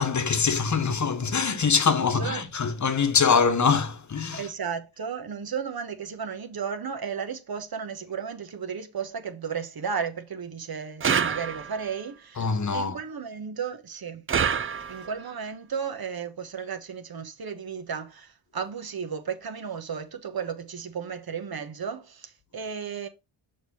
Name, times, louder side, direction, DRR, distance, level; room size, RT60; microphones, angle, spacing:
voice 1, 0.0-4.4 12.4-13.0, left 5 dB, 35° left, 1.1 m, -23 dB
voice 2, 2.0-2.5 4.3-14.2 14.9-23.1, right 6 dB, 50° right, 1.2 m, -34 dB
sound 1, 11.0-11.9 14.3-15.2, right 7 dB, 30° right, 0.4 m, -27 dB
6.4 x 3.2 x 5.5 m
cardioid pair, 70°, 47 cm